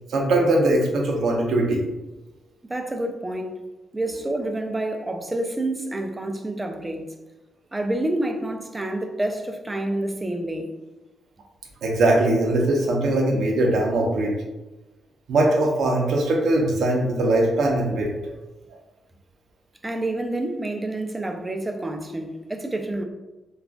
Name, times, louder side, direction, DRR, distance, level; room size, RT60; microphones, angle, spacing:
voice 1, 0.1-1.8 11.8-14.3 15.3-18.3, right 1 dB, 75° right, 0 dB, 0.6 m, -21 dB
voice 2, 2.7-3.6 3.9-7.1 7.7-10.7 19.8-23.0, right 1 dB, 15° right, 5 dB, 0.4 m, -28 dB
3.5 x 2.4 x 2.4 m, 1.0 s
cardioid pair, 100°, 0 cm